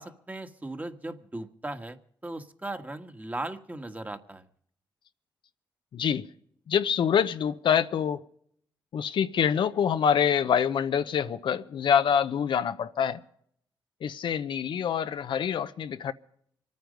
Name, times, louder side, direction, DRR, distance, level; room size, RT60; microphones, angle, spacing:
voice 1, 0.0-4.5, right 2 dB, 20° right, 1.6 m, -38 dB
voice 2, 5.9-6.3 6.7-8.2 8.9-13.2 14.0-16.1, left 8 dB, 70° left, 0.8 m, -26 dB
25.5 x 9.4 x 5.2 m
cardioid pair, 65°, 9 cm